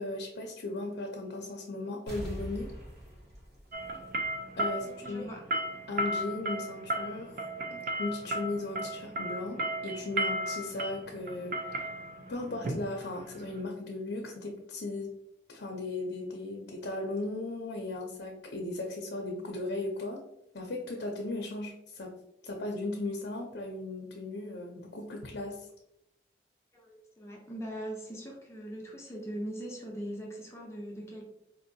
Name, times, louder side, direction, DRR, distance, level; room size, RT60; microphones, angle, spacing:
voice 1, 0.0-2.7 4.6-5.3 5.9-7.4 7.7-11.9 12.3-15.1 15.5-20.2 20.5-22.1 22.4-25.7, left 2 dB, 75° left, 1 dB, 0.5 m, -37 dB
sound 1, 2.1-4.7 5.0-5.1, equal, 80° right, 1.5 m, -43 dB
sound 2, 3.7-13.6, right 1 dB, 45° right, 0.4 m, -35 dB
voice 2, 4.8-5.4 26.7-31.2, right 1 dB, 15° left, -2 dB, 0.6 m, -41 dB
4.1 x 2.7 x 2.6 m, 0.82 s
head